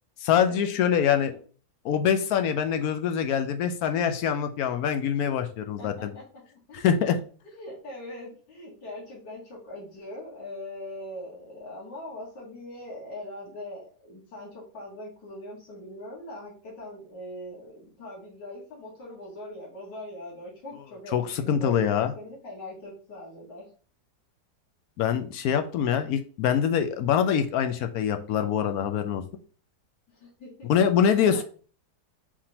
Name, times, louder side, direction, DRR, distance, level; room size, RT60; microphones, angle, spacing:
voice 1, 0.2-1.3 1.8-6.1 6.7-7.2 21.1-22.1 25.0-29.2 30.6-31.4, left 8 dB, 70° left, 8 dB, 1.0 m, -24 dB
voice 2, 1.0-1.4 5.8-23.7 30.1-30.7 31.3-31.4, left 1 dB, 85° left, -4 dB, 2.3 m, -42 dB
4.7 x 3.6 x 2.8 m, 0.40 s
omnidirectional pair, 1.8 m